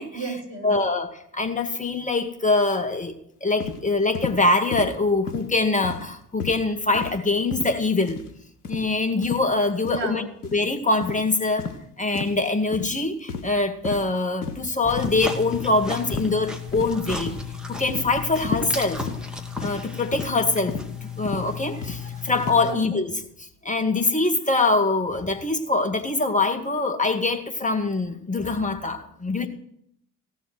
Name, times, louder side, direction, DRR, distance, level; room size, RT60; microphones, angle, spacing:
voice 1, 0.1-0.7 9.9-10.3 22.6-22.7, right 3 dB, 30° right, 1 dB, 7.5 m, -32 dB
voice 2, 0.6-3.1 3.4-8.2 8.7-10.3 10.5-11.7 12.0-17.3 17.7-19.0 19.6-29.5, left 3 dB, 15° left, 7 dB, 2.2 m, -24 dB
sound 1, 3.6-3.8 4.1-4.4 4.7-4.9 5.3-5.5 5.8-6.1 6.4-6.6 6.9-7.2 7.5-7.8 8.1-8.3 8.6-8.9 9.2-9.4 9.8-10.0 10.4-10.6 11.0-11.2 11.6-11.8 12.1-12.4 12.7-12.9 13.3-13.6 13.8-14.0 14.4-14.7 15.0-15.2 15.5-15.7 16.1-16.4 16.7-17.0 17.3-17.5 17.9-18.1 18.4-18.7 19.0-19.2 19.6-19.8 20.1-20.3 20.7-20.9 21.2-21.5 21.8-22.0 22.4-22.6, left 4 dB, 85° left, 1.4 m, -32 dB
sound 2, 14.8-22.7, left 4 dB, ahead, 2.6 m, -34 dB
16.5 x 7.5 x 9.3 m, 0.70 s
figure-of-eight pair, 50°, 45 cm